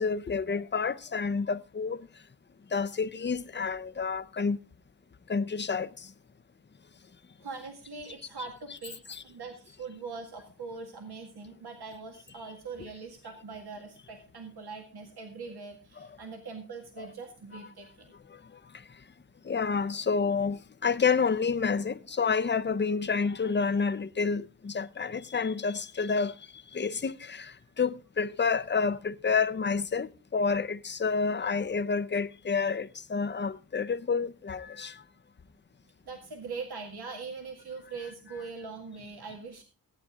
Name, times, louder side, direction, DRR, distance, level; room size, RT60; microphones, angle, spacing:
voice 1, 0.0-2.0 2.7-4.6 5.3-5.9 9.1-9.2 17.0-17.1 19.5-26.3 26.7-27.5 27.8-34.9, left 5 dB, 30° left, 0.6 m, -29 dB
voice 2, 7.4-9.0 9.2-18.1 27.6-27.7 36.1-39.6, right 4 dB, 75° right, 2.0 m, -42 dB
15.5 x 9.5 x 3.6 m
wide cardioid pair, 105°, 39 cm